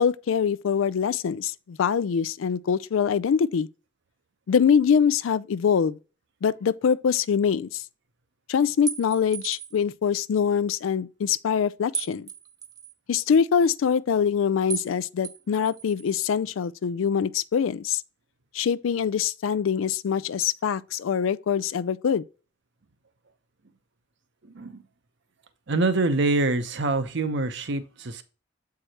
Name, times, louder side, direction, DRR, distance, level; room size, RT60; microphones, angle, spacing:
voice 1, 0.0-3.7 4.5-6.0 6.4-7.8 8.5-12.3 13.1-18.0 18.5-22.2, left 7 dB, 80° left, 0.4 m, -24 dB
sound 1, 8.9-9.8 11.9-12.9 14.7-14.9 15.2-16.2, right 7 dB, 20° right, 0.5 m, -35 dB
voice 2, 24.4-24.8 25.7-28.2, right 3 dB, 65° right, 0.8 m, -25 dB
7.7 x 4.7 x 2.9 m
head